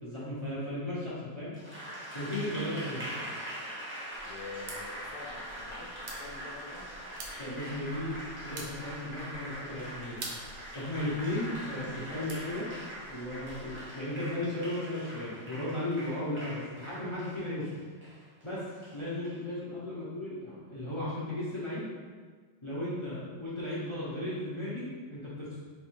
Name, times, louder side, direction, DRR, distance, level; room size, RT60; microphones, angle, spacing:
voice 1, 0.0-1.5 2.1-3.0 7.4-8.1 8.4-10.2 10.7-12.6 13.1-17.7 18.4-18.6 18.9-21.8 22.6-25.6, left 1 dB, 35° left, -9 dB, 0.4 m, -35 dB
Applause, 1.5-19.4, equal, 10° right, 0.7 m, -43 dB
voice 2, 2.9-3.5 4.2-6.9, left 3 dB, 70° left, -1 dB, 1.1 m, -47 dB
sound 1, 4.1-13.9, right 2 dB, 55° right, 0.9 m, -49 dB
3.5 x 3.1 x 4.6 m, 1.5 s
omnidirectional pair, 2.1 m